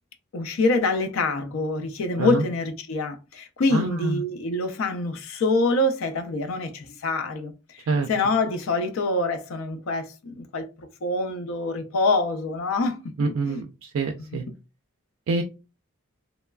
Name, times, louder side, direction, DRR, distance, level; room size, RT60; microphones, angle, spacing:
voice 1, 0.3-13.1 13.5-13.6, left 2 dB, 70° left, 0.4 m, -26 dB
voice 2, 3.7-4.2 7.9-8.1 13.2-14.4 15.3-15.4, right 3 dB, 65° right, 0.3 m, -26 dB
3.0 x 2.2 x 2.3 m
head